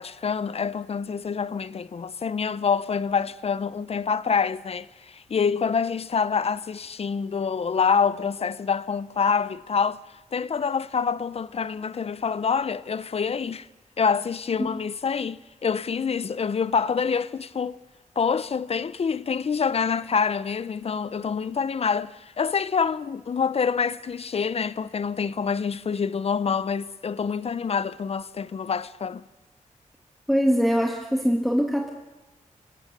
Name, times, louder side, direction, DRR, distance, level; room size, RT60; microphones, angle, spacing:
voice 1, 0.0-10.0 10.3-13.7 14.0-17.8 18.2-29.2, left 6 dB, 50° left, 0.7 m, -26 dB
voice 2, 30.3-31.9, equal, ahead, 1.7 m, -22 dB
25.5 x 17.0 x 6.7 m
wide cardioid pair, 100°, 13 cm